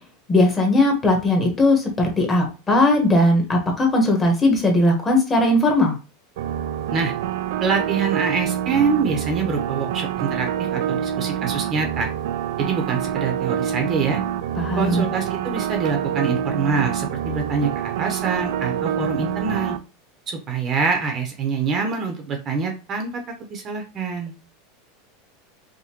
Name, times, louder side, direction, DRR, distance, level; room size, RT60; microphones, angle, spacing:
voice 1, 0.3-6.0 14.6-15.0, left 1 dB, 15° left, 2 dB, 1.0 m, -18 dB
sound 1, 6.4-19.8, right 10 dB, 70° right, 0.4 m, -26 dB
voice 2, 7.6-12.1 12.6-14.2 14.8-19.7 20.3-23.2 23.5-24.3, right 5 dB, 30° right, 3 dB, 0.7 m, -25 dB
4.9 x 2.1 x 2.9 m, 0.31 s
supercardioid pair, 155°, 0 cm